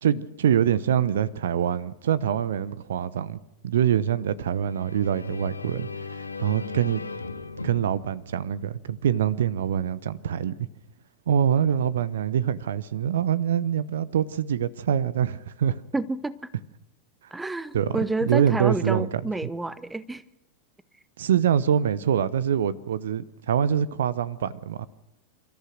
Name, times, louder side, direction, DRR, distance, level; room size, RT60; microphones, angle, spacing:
voice 1, 0.0-7.0 7.6-10.7 11.3-15.8 17.7-18.0 18.2-19.1 21.2-24.9, right 9 dB, 60° right, 0.8 m, -25 dB
sound 1, 4.5-9.3, left 4 dB, 80° left, 1.5 m, -38 dB
voice 2, 15.9-16.3 17.3-20.2, right 3 dB, 10° right, 0.7 m, -29 dB
28.5 x 14.0 x 6.5 m
figure-of-eight pair, 90°, 0 cm